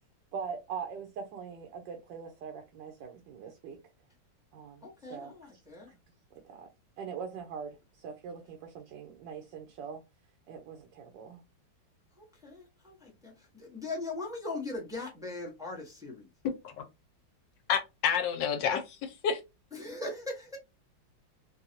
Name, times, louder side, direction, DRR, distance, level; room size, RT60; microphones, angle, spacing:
voice 1, 0.3-3.8 4.5-5.3 5.9-6.0 6.3-6.7 7.0-10.0 10.5-11.4, right 6 dB, 75° right, 1.3 m, -42 dB
voice 2, 4.8-5.9 12.2-16.3 19.7-20.6, left 2 dB, 5° right, 0.5 m, -40 dB
voice 3, 17.7-19.4, left 7 dB, 75° left, 1.2 m, -29 dB
3.9 x 2.3 x 2.7 m
omnidirectional pair, 2.1 m